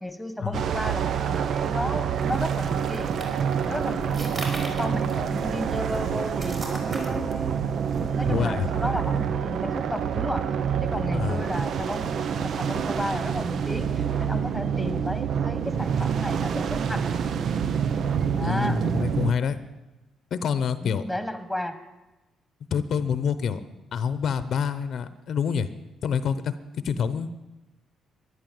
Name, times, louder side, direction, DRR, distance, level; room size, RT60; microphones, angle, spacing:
voice 1, 0.0-3.1 3.6-10.5 10.8-17.0 18.3-18.8 20.8-21.8, left 1 dB, 5° left, 10 dB, 1.6 m, -33 dB
sound 1, 0.5-19.3, right 7 dB, 60° right, 0.8 m, -27 dB
sound 2, 3.0-11.0, right 2 dB, 40° right, 4.9 m, -42 dB
voice 2, 8.3-8.7 11.1-11.4 18.4-19.6 20.3-21.0 22.7-23.6 23.9-25.7 26.0-26.5 26.8-27.3, left 7 dB, 65° left, 13 dB, 0.8 m, -26 dB
13.0 x 11.5 x 7.9 m, 1.1 s
cardioid pair, 90°, 0 cm